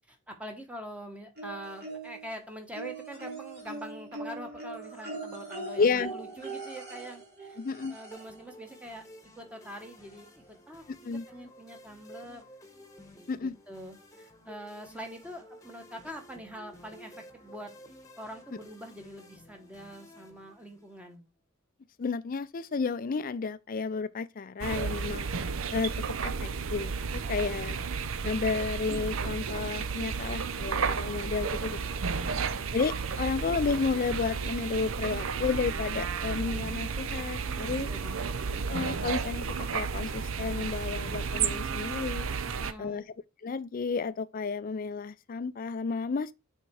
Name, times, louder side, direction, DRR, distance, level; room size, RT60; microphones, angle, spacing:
voice 1, 0.1-7.6 7.9-9.0 9.4-12.5 13.0-17.7 18.2-21.2 27.2-27.6 32.1-32.7 33.1-33.3 37.4-38.6 42.4-43.1, equal, 5° right, 1.5 m, -45 dB
sound 1, 1.4-2.3 2.7-8.4 9.6-9.7 10.1-10.2, right 3 dB, 50° right, 3.0 m, -41 dB
voice 2, 5.8-6.1 7.6-8.0 10.9-11.2 13.3-13.6 22.0-25.3 25.7-26.0 26.2-27.8 28.2-31.8 32.7-37.9 38.7-42.3 42.8-43.0 43.4-46.3, left 4 dB, 40° left, 0.4 m, -32 dB
sound 2, 8.1-21.1, equal, 15° left, 1.4 m, -53 dB
sound 3, 24.6-42.7, right 5 dB, 70° right, 0.6 m, -32 dB
6.8 x 4.5 x 4.8 m
head